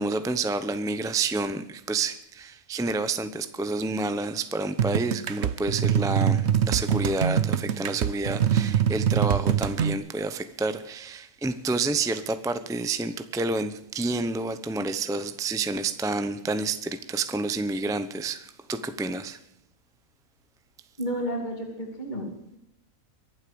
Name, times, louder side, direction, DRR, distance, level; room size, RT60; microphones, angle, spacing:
voice 1, 0.0-19.4, right 3 dB, 5° right, 0.6 m, -29 dB
sound 1, 4.8-9.9, right 9 dB, 55° right, 0.9 m, -24 dB
voice 2, 21.0-22.6, equal, 30° left, 2.9 m, -32 dB
23.5 x 8.1 x 7.0 m
omnidirectional pair, 1.5 m